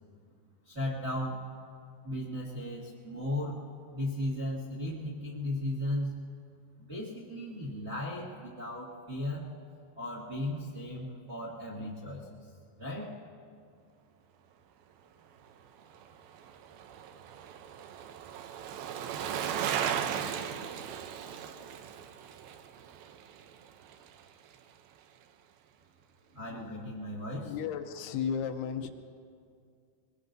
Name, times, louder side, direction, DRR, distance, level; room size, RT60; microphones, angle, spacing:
voice 1, 0.6-1.4 2.0-3.6 3.9-6.2 6.8-9.5 9.9-12.5 12.8-13.1 26.3-27.5, left 1 dB, 40° right, -7 dB, 0.9 m, -36 dB
Bicycle, 15.8-24.2 24.5-24.6, right 8 dB, 80° right, 2.3 m, -37 dB
voice 2, 27.4-28.9, left 7 dB, 80° left, 7 dB, 2.7 m, -34 dB
24.5 x 21.0 x 2.7 m, 2.3 s
omnidirectional pair, 5.0 m